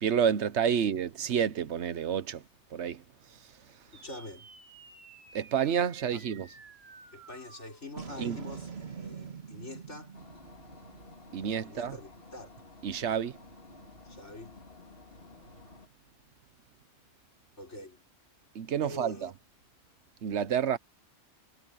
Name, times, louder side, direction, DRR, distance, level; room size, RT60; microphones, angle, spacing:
voice 1, 0.0-2.4 2.7-3.0 5.3-6.5 8.2-8.4 11.3-11.9 12.8-13.3 18.6-19.3 20.2-20.8, right 8 dB, 75° right, 1.1 m, -29 dB
voice 2, 3.9-4.5 6.1-6.2 7.1-10.2 11.6-12.5 14.0-14.6 17.6-18.0 18.8-19.3, left 2 dB, 85° left, 5.0 m, -45 dB
sound 1, 3.9-12.5, right 5 dB, 60° right, 2.1 m, -47 dB
sound 2, 10.1-15.9, left 3 dB, 55° left, 2.9 m, -52 dB
omnidirectional pair, 1.2 m